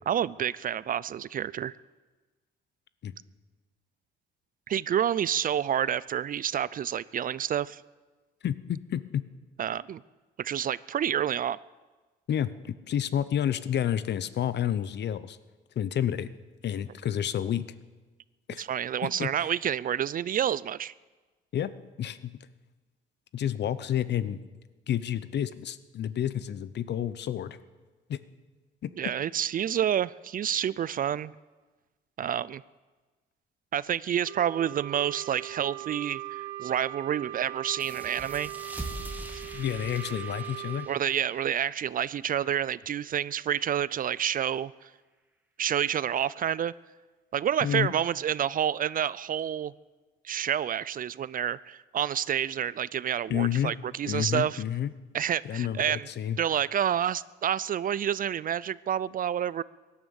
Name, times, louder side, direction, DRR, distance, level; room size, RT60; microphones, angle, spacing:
voice 1, 0.1-1.7 4.7-7.8 9.6-10.0 10.4-11.6 18.6-20.9 29.0-31.3 32.2-32.6 33.7-38.9 39.3-39.4 40.9-44.9 45.6-46.7 47.3-49.7 50.2-54.6 55.1-56.1 56.4-59.6, right 9 dB, 45° right, 20 dB, 0.4 m, -29 dB
voice 2, 8.4-9.3 12.3-15.4 15.8-16.3 16.6-17.7 18.5-18.6 19.0-19.3 21.5-21.7 22.0-22.3 23.3-24.4 24.9-27.6 28.1-28.2 28.8-28.9 39.5-40.9 47.6-47.9 53.3-53.7 54.1-54.9 55.4-56.4, left 10 dB, 60° left, 15 dB, 0.8 m, -30 dB
Wind instrument woodwind instrument, 34.2-40.9, right 15 dB, 85° right, 0.7 m, -40 dB
sound 1, 37.8-43.0, right 1 dB, 10° right, 1.9 m, -43 dB
17.0 x 11.5 x 7.1 m, 1.3 s
cardioid pair, 90°, 20 cm